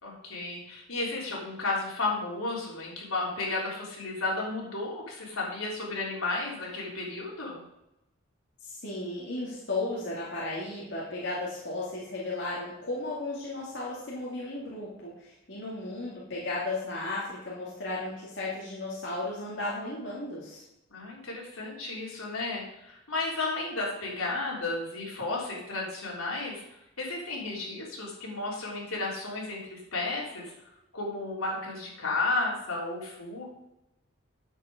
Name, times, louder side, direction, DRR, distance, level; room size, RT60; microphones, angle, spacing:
voice 1, 0.0-7.6 20.9-26.6 27.0-30.5 30.9-33.5, left 2 dB, 85° left, -3 dB, 3.6 m, -33 dB
voice 2, 8.6-20.6, left 2 dB, 55° left, -6 dB, 2.1 m, -35 dB
9.2 x 7.8 x 5.0 m, 0.89 s
head